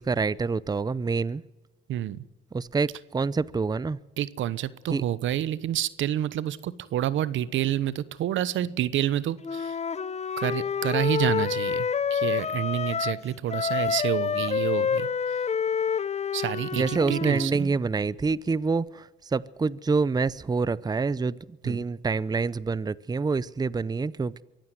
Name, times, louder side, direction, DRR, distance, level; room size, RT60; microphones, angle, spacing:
voice 1, 0.0-1.4 2.5-4.0 4.9-5.0 16.7-21.4 21.6-24.4, right 4 dB, 20° right, 0.6 m, -27 dB
voice 2, 4.2-9.8 10.4-15.4 16.3-17.7 21.6-21.8, right 12 dB, 75° right, 1.0 m, -28 dB
Wind instrument woodwind instrument, 9.4-13.2 13.5-17.5, left 6 dB, 35° left, 0.7 m, -28 dB
23.5 x 15.5 x 7.8 m
cardioid pair, 90°, 20 cm